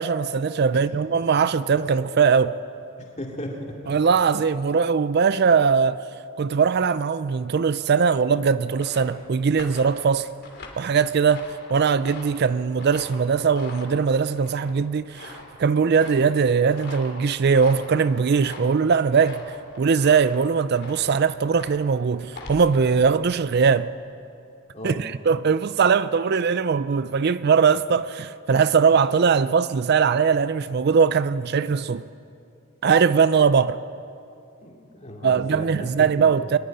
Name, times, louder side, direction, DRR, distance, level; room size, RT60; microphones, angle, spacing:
voice 1, 0.0-2.6 3.9-6.0 6.4-10.3 10.8-11.4 11.7-19.4 19.8-23.9 24.8-32.0 32.8-33.8 35.2-36.6, right 6 dB, 50° right, 0.4 m, -20 dB
voice 2, 3.0-4.0 24.7-25.1 34.6-36.3, left 1 dB, 30° left, 2.6 m, -36 dB
sound 1, 8.5-23.8, left 2 dB, 50° left, 2.9 m, -43 dB
23.0 x 11.5 x 10.0 m
head